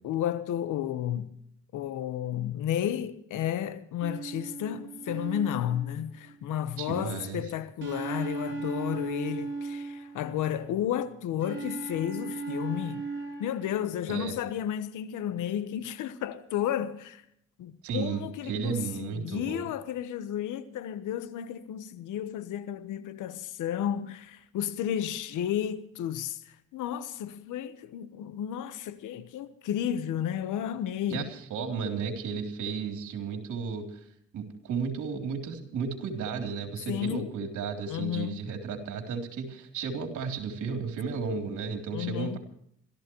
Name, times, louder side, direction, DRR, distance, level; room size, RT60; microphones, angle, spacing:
voice 1, 0.0-1.3 1.7-13.0 13.4-17.2 17.6-31.3 36.9-37.3 37.9-38.4 41.9-42.4, left 10 dB, 80° left, 1.2 m, -32 dB
sound 1, 4.0-6.5 7.8-10.6 11.4-14.0, right 3 dB, 40° right, 3.6 m, -37 dB
voice 2, 6.8-7.4 14.1-14.3 17.8-19.7 31.1-34.0 34.3-42.4, right 5 dB, 75° right, 3.6 m, -33 dB
27.0 x 14.0 x 3.1 m
cardioid pair, 80°, 30 cm